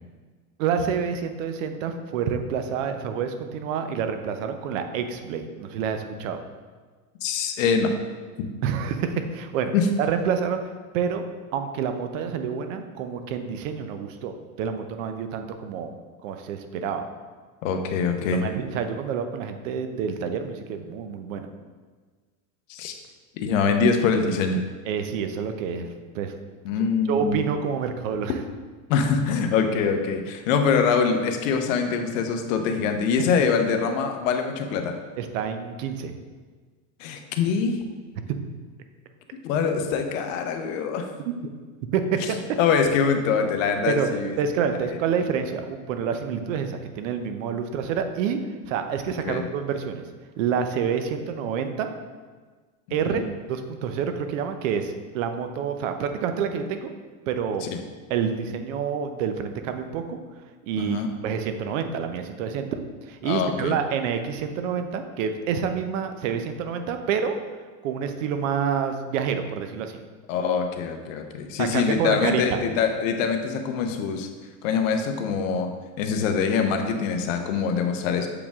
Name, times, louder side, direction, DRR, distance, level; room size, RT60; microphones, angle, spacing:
voice 1, 0.6-6.4 8.6-9.7 10.0-10.6 10.9-11.2 11.5-15.9 16.2-17.0 18.3-21.5 24.9-25.9 26.1-26.3 27.1-28.3 33.2-33.3 35.2-36.2 38.3-38.4 41.2-41.3 41.9-42.4 43.9-44.1 44.4-48.4 48.7-50.0 50.4-51.9 52.9-56.9 57.3-57.7 58.1-60.2 60.6-62.8 63.1-67.4 67.8-70.0 71.6-72.6, right 7 dB, 60° right, 7 dB, 0.7 m, -28 dB
voice 2, 7.2-7.9 9.7-9.9 17.6-18.4 22.7-22.9 23.4-24.6 26.6-27.4 28.9-35.0 37.0-37.8 39.4-41.1 42.6-44.4 44.9-45.0 49.2-49.5 53.0-53.2 57.6-57.8 60.8-61.1 63.2-63.7 70.3-74.3 74.6-75.7 76.0-78.3, left 5 dB, 60° left, 5 dB, 0.9 m, -24 dB
7.1 x 5.0 x 3.5 m, 1.4 s
supercardioid pair, 150°, 44 cm